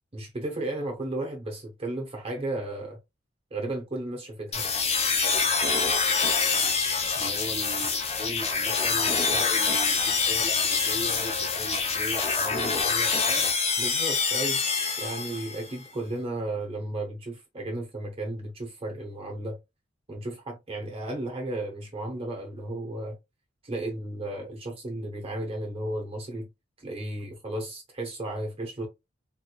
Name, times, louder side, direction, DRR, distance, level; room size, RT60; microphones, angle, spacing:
voice 1, 0.1-3.0 3.5-4.7 13.8-14.6 15.0-19.6 20.1-23.2 23.6-26.5 26.8-28.9, right 1 dB, 30° right, 0.8 m, -34 dB
sound 1, 4.5-15.7, left 5 dB, 35° left, 0.8 m, -26 dB
voice 2, 7.2-13.5, equal, 5° left, 1.3 m, -38 dB
3.7 x 3.0 x 2.2 m
head